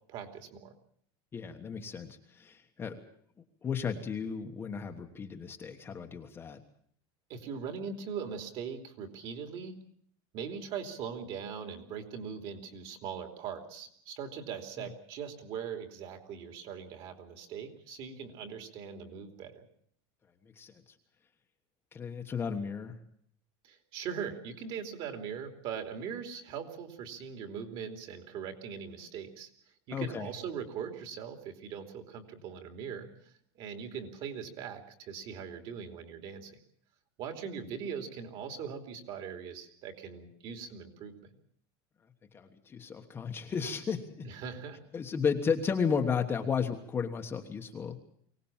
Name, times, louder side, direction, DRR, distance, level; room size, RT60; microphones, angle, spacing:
voice 1, 0.1-0.7 7.3-9.8 10.3-19.6 23.6-29.5 29.9-33.1 33.6-36.6 37.2-41.3 44.2-44.8, right 7 dB, 40° right, 6 dB, 3.1 m, -40 dB
voice 2, 1.3-3.0 3.6-6.6 20.6-20.7 21.9-23.0 29.9-30.3 42.3-44.3 44.9-48.0, left 6 dB, 15° left, 3 dB, 1.3 m, -33 dB
24.0 x 18.5 x 7.3 m, 0.64 s
cardioid pair, 175°, 13 cm